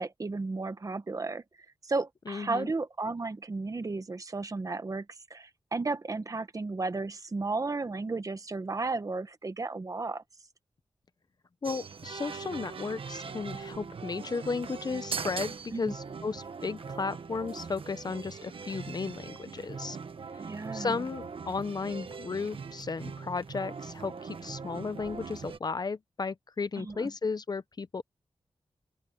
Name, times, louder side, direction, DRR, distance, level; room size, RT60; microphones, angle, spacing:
voice 1, 0.0-1.4 1.8-10.2 15.7-15.9 20.4-21.0 26.8-27.1, right 3 dB, 35° right, 1.2 m, -34 dB
voice 2, 2.3-2.7 11.6-20.0 20.3-28.0, left 4 dB, 45° left, 0.7 m, -34 dB
sound 1, 11.6-25.6, right 5 dB, 65° right, 1.1 m, -41 dB
open air
wide cardioid pair, 140°, 10 cm